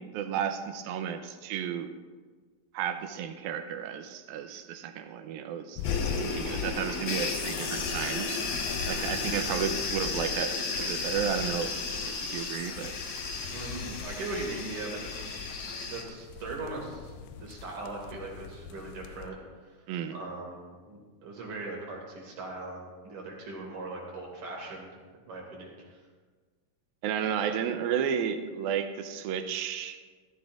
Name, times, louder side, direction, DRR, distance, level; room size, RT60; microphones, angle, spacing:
voice 1, 0.0-1.9 2.7-5.8 6.2-11.7 12.0-13.0 19.9-20.2 27.0-30.1, right 8 dB, 85° right, 8 dB, 2.5 m, -33 dB
sound 1, 5.8-19.3, left 6 dB, 85° left, 1.8 m, -41 dB
sound 2, 5.8-16.0, left 4 dB, 65° left, 1.8 m, -34 dB
voice 2, 9.1-9.4 13.5-15.3 15.9-19.4 19.6-19.7 20.1-20.6 20.8-24.9 25.3-25.9, right 2 dB, 60° right, -1 dB, 3.5 m, -39 dB
14.5 x 14.0 x 2.5 m, 1.4 s
omnidirectional pair, 4.2 m